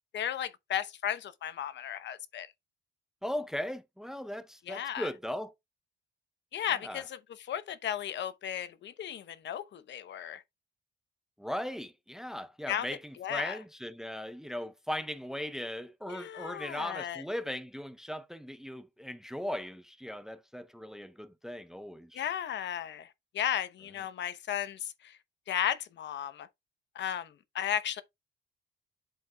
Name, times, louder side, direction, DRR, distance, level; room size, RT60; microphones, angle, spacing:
voice 1, 0.1-2.5 4.7-5.1 6.5-7.2 7.5-10.4 12.7-12.9 13.2-13.6 16.1-17.2 22.1-23.1 23.3-24.9 25.5-26.5 27.0-27.3 27.5-28.0, left 10 dB, 65° left, 0.9 m, -34 dB
voice 2, 3.2-5.5 6.8-7.0 11.4-22.2, left 1 dB, ahead, 0.6 m, -38 dB
7.6 x 7.6 x 2.3 m
cardioid pair, 90°, 20 cm